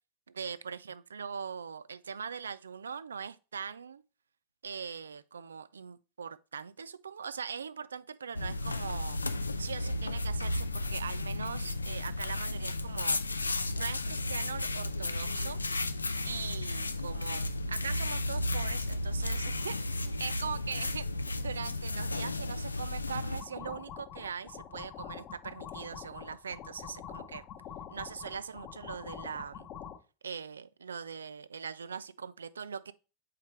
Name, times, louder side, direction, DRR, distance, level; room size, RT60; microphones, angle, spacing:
voice 1, 0.3-4.0 4.6-9.2 9.6-13.2 13.7-15.6 16.2-27.4 27.9-29.7 30.2-32.9, right 6 dB, 70° right, 0.3 m, -41 dB
sound 1, 8.3-23.4, left 2 dB, 80° left, 0.4 m, -33 dB
sound 2, 23.3-30.0, left 9 dB, 35° left, 0.8 m, -46 dB
7.3 x 4.3 x 3.1 m
figure-of-eight pair, 90°, 0 cm